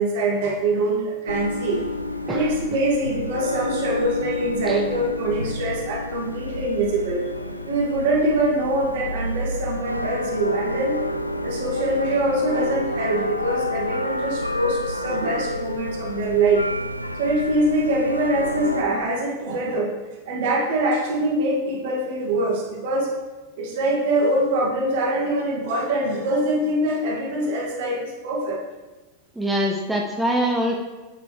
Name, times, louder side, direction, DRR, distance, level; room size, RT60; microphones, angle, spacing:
voice 1, 0.0-2.0 2.3-7.3 7.6-11.0 11.4-16.6 17.1-19.9 20.3-23.2 23.6-28.6, right 1 dB, 50° right, -2 dB, 2.0 m, -24 dB
sound 1, 1.3-18.8, left 1 dB, 85° left, 0.4 m, -29 dB
voice 2, 29.4-30.8, equal, 5° right, 0 dB, 0.7 m, -24 dB
8.0 x 6.8 x 3.2 m, 1.2 s
figure-of-eight pair, 90°, 0 cm